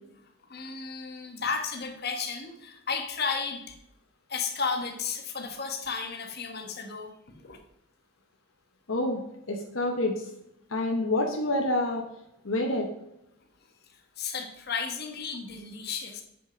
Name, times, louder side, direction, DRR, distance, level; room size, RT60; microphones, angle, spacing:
voice 1, 0.5-3.8 4.3-7.6 14.2-16.2, left 5 dB, 45° left, 4 dB, 1.4 m, -33 dB
voice 2, 8.9-9.2 9.5-10.3 10.7-12.0 12.4-12.9, left 1 dB, 70° left, 3 dB, 1.1 m, -27 dB
8.5 x 6.6 x 5.1 m, 0.80 s
head